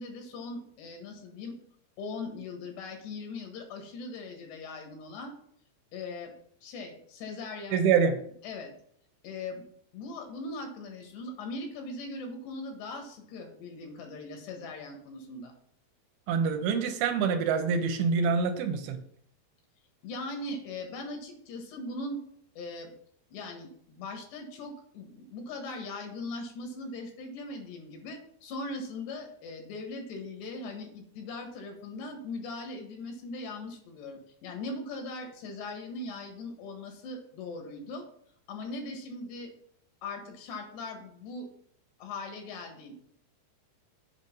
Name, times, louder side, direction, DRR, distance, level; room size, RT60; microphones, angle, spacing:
voice 1, 0.0-1.6 2.0-5.3 5.9-6.3 6.6-7.9 8.4-8.7 9.2-9.7 9.9-15.5 20.0-22.2 22.6-22.9 23.3-38.1 38.5-39.5 40.0-41.5 42.0-42.9, left 2 dB, 90° left, 3 dB, 3.8 m, -40 dB
voice 2, 7.7-8.2 16.3-19.0, right 6 dB, 75° right, 6 dB, 2.6 m, -26 dB
8.2 x 5.2 x 5.4 m, 0.65 s
omnidirectional pair, 4.7 m